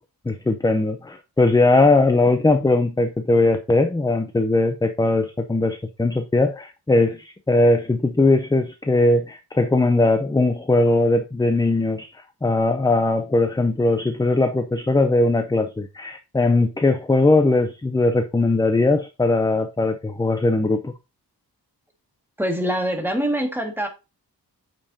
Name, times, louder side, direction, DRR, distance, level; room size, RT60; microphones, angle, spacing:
voice 1, 0.3-20.9, left 2 dB, 10° left, 0.5 m, -20 dB
voice 2, 22.4-23.9, equal, 5° right, 1.6 m, -24 dB
8.7 x 5.3 x 2.7 m
wide cardioid pair, 120°, 40 cm